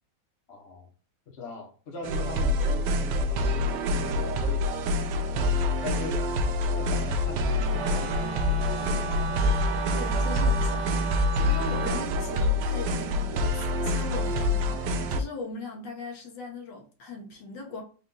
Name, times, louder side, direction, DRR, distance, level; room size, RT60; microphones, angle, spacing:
voice 1, 0.5-0.9 1.3-6.3 6.7-9.4 11.6-11.8, left 3 dB, 40° left, 1.1 m, -41 dB
sound 1, 2.0-15.2, left 1 dB, 75° right, 1.2 m, -26 dB
Wind instrument woodwind instrument, 7.7-12.1, right 3 dB, 40° right, 0.9 m, -35 dB
voice 2, 9.9-17.8, left 3 dB, 75° left, 1.7 m, -40 dB
4.2 x 2.5 x 3.8 m
omnidirectional pair, 2.0 m